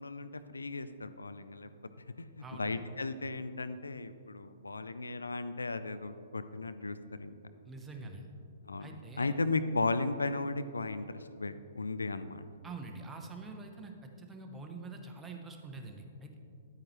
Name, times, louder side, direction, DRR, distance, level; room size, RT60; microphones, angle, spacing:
voice 1, 0.0-1.7 2.2-7.3 8.7-12.5, left 3 dB, 75° left, 11 dB, 0.3 m, -36 dB
voice 2, 2.4-2.8 7.6-8.3 8.8-9.3 12.6-16.4, right 3 dB, 10° right, 3 dB, 0.9 m, -45 dB
9.5 x 8.6 x 3.1 m, 2.4 s
figure-of-eight pair, 115°, 0 cm